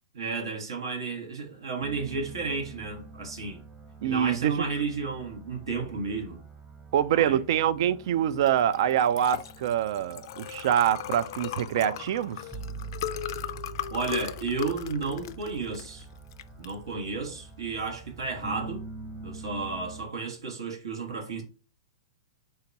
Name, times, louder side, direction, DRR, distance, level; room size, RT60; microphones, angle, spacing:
voice 1, 0.1-3.6 4.0-6.4 7.1-7.4 13.9-16.0 16.6-18.8 19.2-21.4, right 4 dB, 85° right, 1.1 m, -32 dB
sound 1, 1.8-20.1, right 4 dB, 10° right, 0.7 m, -45 dB
voice 2, 4.0-4.7 6.9-12.4, right 10 dB, 60° right, 0.3 m, -25 dB
Liquid, 8.4-18.6, left 11 dB, 55° left, 0.4 m, -39 dB
3.6 x 2.8 x 4.0 m
hypercardioid pair, 125°, 3 cm